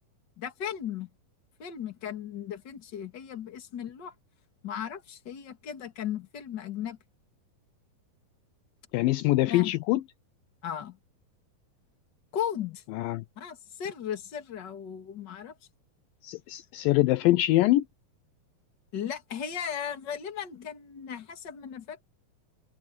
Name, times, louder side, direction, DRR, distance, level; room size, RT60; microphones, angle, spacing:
voice 1, 0.4-1.1 1.6-4.1 4.6-7.0 9.5-9.7 10.6-11.0 12.3-12.8 13.4-15.5 16.5-16.6 18.9-22.0, left 9 dB, 35° left, 2.3 m, -36 dB
voice 2, 8.9-10.0 12.9-13.2 16.2-17.8, left 17 dB, 80° left, 2.3 m, -24 dB
open air
omnidirectional pair, 4.2 m